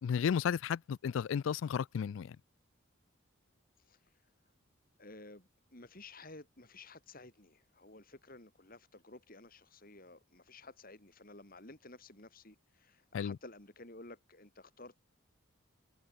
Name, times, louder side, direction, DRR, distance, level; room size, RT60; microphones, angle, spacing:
voice 1, 0.0-2.4 13.1-13.4, left 7 dB, 70° left, 0.3 m, -33 dB
voice 2, 5.0-15.0, left 2 dB, 45° left, 3.1 m, -54 dB
open air
head